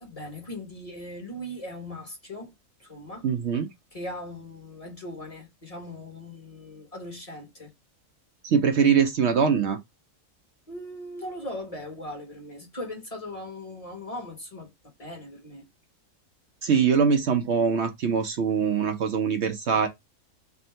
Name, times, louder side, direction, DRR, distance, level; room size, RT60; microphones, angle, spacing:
voice 1, 0.0-2.5 2.8-3.3 3.9-7.7 10.7-14.7 15.0-15.7, left 1 dB, 25° left, 1.1 m, -39 dB
voice 2, 3.2-3.7 8.4-9.8 16.6-19.9, right 6 dB, 60° right, 0.7 m, -23 dB
3.5 x 2.7 x 4.3 m
omnidirectional pair, 1.6 m